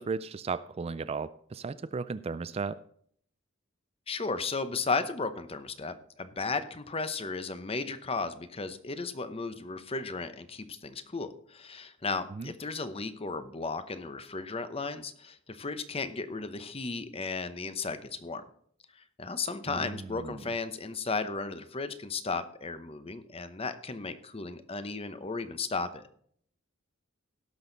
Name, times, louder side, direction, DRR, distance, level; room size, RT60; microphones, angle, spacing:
voice 1, 0.0-2.8 12.3-12.5 19.7-20.4, right 4 dB, 30° right, 14 dB, 0.3 m, -35 dB
voice 2, 4.1-18.4 19.2-26.0, left 4 dB, 30° left, 11 dB, 0.8 m, -35 dB
17.5 x 6.3 x 3.9 m, 0.62 s
head